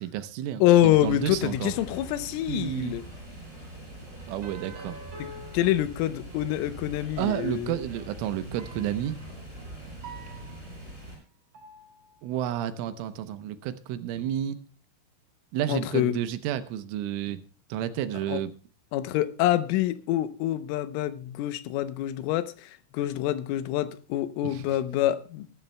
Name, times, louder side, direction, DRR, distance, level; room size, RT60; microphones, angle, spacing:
voice 1, 0.0-1.7 2.5-3.0 4.3-5.0 7.2-9.2 12.2-14.6 15.5-17.4 17.7-18.5 24.4-24.8, right 11 dB, 80° right, 3.2 m, -31 dB
voice 2, 0.6-3.0 5.5-7.8 15.7-16.1 18.3-18.4 18.9-25.5, left 13 dB, 80° left, 3.3 m, -26 dB
sound 1, 0.7-11.2, right 1 dB, 10° right, 7.6 m, -43 dB
sound 2, 4.4-6.6 8.6-9.1 10.0-11.0 11.5-12.3, right 2 dB, 40° right, 2.9 m, -46 dB
22.5 x 12.0 x 2.2 m
omnidirectional pair, 5.9 m